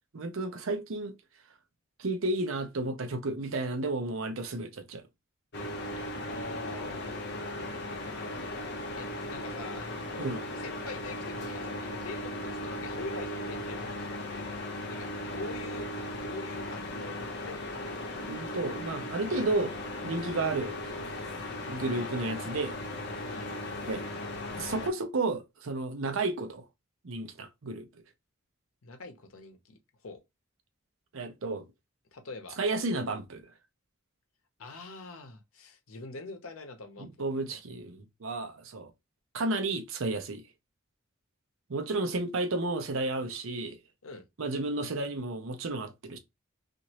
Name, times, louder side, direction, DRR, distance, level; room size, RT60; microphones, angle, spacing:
voice 1, 0.1-1.1 2.0-5.0 10.2-10.4 18.3-19.7 20.0-20.9 21.7-22.8 23.9-24.0 24.6-26.6 27.0-27.9 31.1-31.6 32.6-33.4 37.0-38.9 39.3-40.4 41.7-43.8 44.4-46.2, right 2 dB, 70° right, 0.6 m, -32 dB
sound 1, 5.5-24.9, left 1 dB, 55° left, 0.9 m, -37 dB
voice 2, 6.3-7.2 8.0-8.5 9.0-9.9 10.1-10.3 10.5-14.1 14.9-15.9 16.2-18.1 21.9-22.1 23.3-23.5 28.8-29.8 30.0-30.2 32.1-32.6 34.6-37.6 44.0-44.2, left 3 dB, 85° left, 0.7 m, -44 dB
3.0 x 2.5 x 2.8 m
head